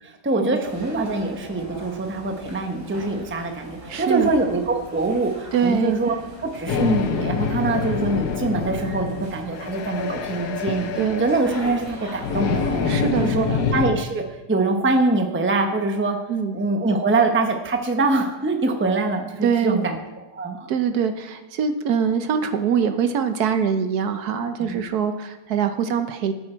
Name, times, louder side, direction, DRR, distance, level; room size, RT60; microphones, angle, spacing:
voice 1, 0.0-6.2 6.5-10.9 11.2-12.9 13.2-14.2 14.5-16.2 16.5-20.7 24.6-24.8, right 3 dB, 10° right, 4 dB, 0.7 m, -24 dB
sound 1, 0.6-13.8, equal, 30° right, 3.2 m, -41 dB
voice 2, 3.9-4.3 5.5-6.0 11.0-11.3 12.9-13.7 16.3-16.5 19.4-19.9 20.7-26.3, right 7 dB, 70° right, 9 dB, 1.2 m, -23 dB
sound 2, 6.7-13.9, left 5 dB, 70° left, 1.4 m, -26 dB
13.0 x 8.2 x 4.5 m, 1.0 s
omnidirectional pair, 1.8 m